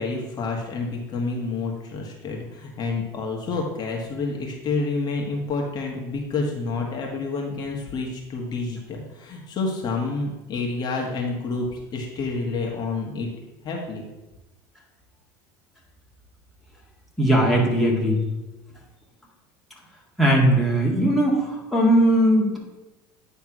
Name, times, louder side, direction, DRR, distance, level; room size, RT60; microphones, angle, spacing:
voice 1, 0.0-13.3 13.6-14.0, left 3 dB, 40° left, 0 dB, 1.5 m, -29 dB
voice 2, 17.2-18.2 20.2-22.6, right 1 dB, ahead, -4 dB, 1.9 m, -19 dB
9.5 x 3.5 x 6.0 m, 1.0 s
supercardioid pair, 110°, 10 cm